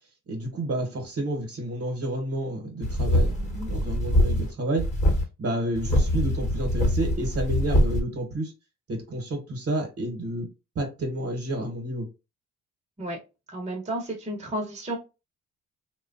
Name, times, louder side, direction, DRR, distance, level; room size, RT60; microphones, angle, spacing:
voice 1, 0.3-4.8 5.4-8.5 8.9-10.5 10.7-12.1, right 1 dB, 50° right, 1.2 m, -30 dB
sound 1, 2.8-4.5 4.8-5.2 5.8-8.0, equal, 25° left, 1.1 m, -23 dB
voice 2, 13.5-15.0, right 1 dB, 25° right, 1.0 m, -32 dB
3.0 x 2.3 x 2.5 m
cardioid pair, 90°, 30 cm